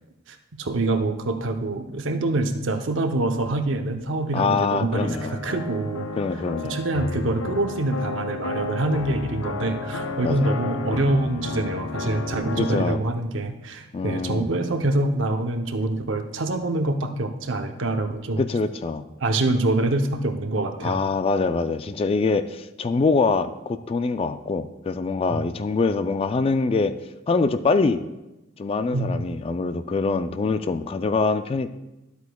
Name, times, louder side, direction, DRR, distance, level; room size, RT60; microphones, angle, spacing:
voice 1, 0.3-6.1 6.6-18.4 19.2-21.0 25.3-25.4 28.9-29.2, right 2 dB, 65° right, 6 dB, 0.7 m, -25 dB
voice 2, 4.3-5.4 6.2-6.8 10.2-10.5 12.6-13.0 13.9-14.5 18.4-19.0 20.8-26.9 27.3-28.0 28.6-31.7, left 4 dB, 30° left, 11 dB, 0.3 m, -24 dB
sound 1, 4.9-12.9, left 3 dB, 90° left, 0.6 m, -32 dB
12.0 x 8.1 x 2.3 m, 0.98 s
head